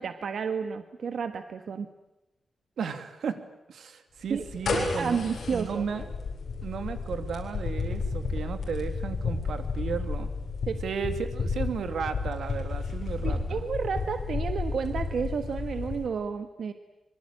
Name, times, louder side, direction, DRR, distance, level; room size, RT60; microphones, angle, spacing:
voice 1, 0.0-1.9 4.3-5.8 10.7-10.8 13.2-16.7, right 6 dB, 65° right, 8 dB, 1.4 m, -31 dB
voice 2, 2.8-5.2 5.5-6.1 6.6-10.3 10.8-13.6, right 6 dB, 90° right, 9 dB, 2.7 m, -34 dB
sound 1, 4.3-16.1, left 4 dB, 55° left, 7.7 m, -32 dB
26.0 x 24.0 x 8.8 m, 0.94 s
wide cardioid pair, 170°, 0 cm